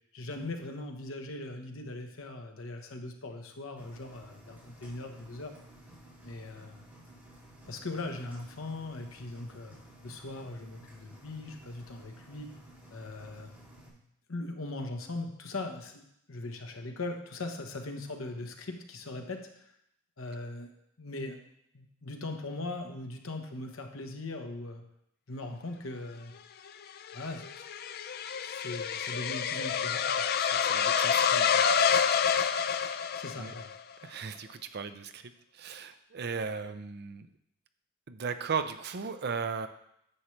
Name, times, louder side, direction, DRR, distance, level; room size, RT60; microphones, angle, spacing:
voice 1, 0.1-5.6 6.2-6.8 7.7-9.7 10.0-12.5 12.9-13.5 14.3-19.8 20.2-20.7 21.0-21.4 21.7-24.8 25.3-26.3 27.1-27.7 28.4-30.3 33.1-33.7, left 2 dB, 65° left, 5 dB, 1.1 m, -40 dB
Engine, 3.8-13.9, right 1 dB, 10° right, 2.7 m, -54 dB
sound 1, 26.7-33.8, left 7 dB, 45° left, 0.4 m, -28 dB
voice 2, 30.4-31.6 32.0-32.4 33.4-33.5 34.0-37.3 38.1-39.7, right 5 dB, 50° right, 10 dB, 0.5 m, -37 dB
9.9 x 7.3 x 3.2 m, 0.76 s
head